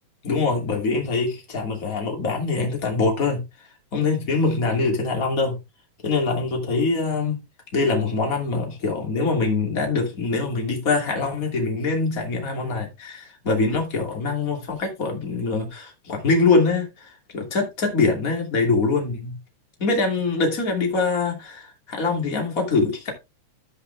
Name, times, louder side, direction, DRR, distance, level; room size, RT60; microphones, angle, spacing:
voice 1, 0.2-3.4 3.9-5.5 6.0-7.4 7.7-19.3 19.8-23.1, left 3 dB, 25° left, 2.7 m, -23 dB
13.0 x 5.8 x 3.4 m
omnidirectional pair, 4.6 m